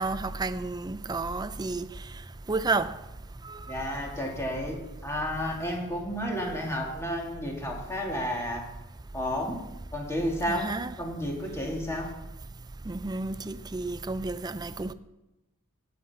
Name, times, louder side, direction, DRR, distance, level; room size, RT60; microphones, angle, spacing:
voice 1, 0.0-1.9 2.5-3.0 3.4-3.6 10.5-10.9 12.9-14.9, right 3 dB, 20° right, 0.4 m, -31 dB
voice 2, 3.7-4.8 5.0-8.6 9.1-9.6 9.9-10.7 11.0-12.1, equal, 10° left, 2.3 m, -31 dB
16.5 x 5.9 x 5.6 m
head